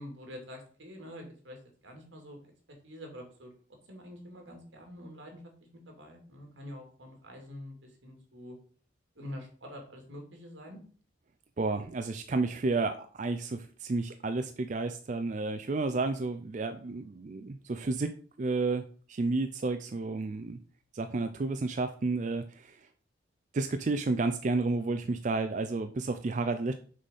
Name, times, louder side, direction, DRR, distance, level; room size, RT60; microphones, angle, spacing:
voice 1, 0.0-1.6 1.8-2.4 2.8-3.5 3.9-5.5 5.9-8.6 9.2-10.8, left 1 dB, 80° right, 2 dB, 2.3 m, -46 dB
voice 2, 11.6-20.6 20.9-22.9 23.5-26.7, right 3 dB, 40° right, 8 dB, 0.4 m, -31 dB
6.4 x 4.1 x 5.5 m, 0.43 s
head